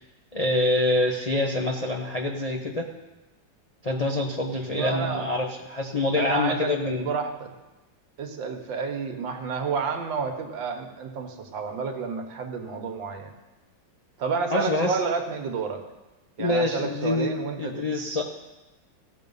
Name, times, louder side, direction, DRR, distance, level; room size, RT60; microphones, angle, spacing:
voice 1, 0.3-2.9 3.8-7.1 14.5-15.0 16.4-17.3 17.6-18.2, left 2 dB, 75° left, 0 dB, 0.3 m, -26 dB
voice 2, 4.7-5.3 6.2-7.5 8.2-13.3 14.2-15.8 16.4-17.8, right 5 dB, 75° right, 5 dB, 1.8 m, -30 dB
16.0 x 6.4 x 5.4 m, 1.1 s
omnidirectional pair, 2.1 m